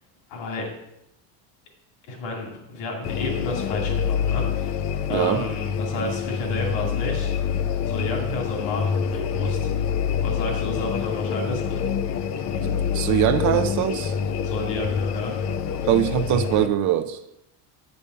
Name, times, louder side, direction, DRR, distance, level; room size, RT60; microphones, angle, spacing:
voice 1, 0.3-0.7 2.1-4.8 5.1-7.4 7.9-9.7 10.2-11.8 14.4-15.3, left 2 dB, 75° left, -1 dB, 2.6 m, -31 dB
sound 1, 3.0-16.7, left 7 dB, 40° left, 0.5 m, -26 dB
voice 2, 5.1-5.4 12.6-14.2 15.9-17.2, right 12 dB, 45° right, 10 dB, 0.5 m, -22 dB
8.4 x 5.5 x 5.5 m, 0.84 s
cardioid pair, 150°, 43 cm